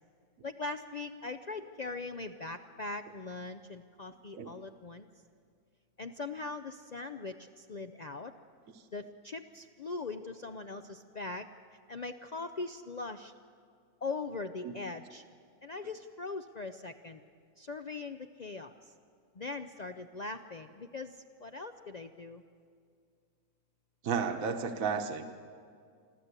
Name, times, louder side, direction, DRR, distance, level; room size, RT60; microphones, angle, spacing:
voice 1, 0.4-5.1 6.0-8.3 8.9-11.5 11.9-13.3 14.0-15.2 15.6-17.2 17.6-18.9 19.3-22.4, left 3 dB, 75° left, 8 dB, 0.3 m, -41 dB
voice 2, 24.0-25.3, right 6 dB, 65° right, 5 dB, 1.4 m, -32 dB
24.5 x 14.5 x 8.1 m, 2.2 s
omnidirectional pair, 1.6 m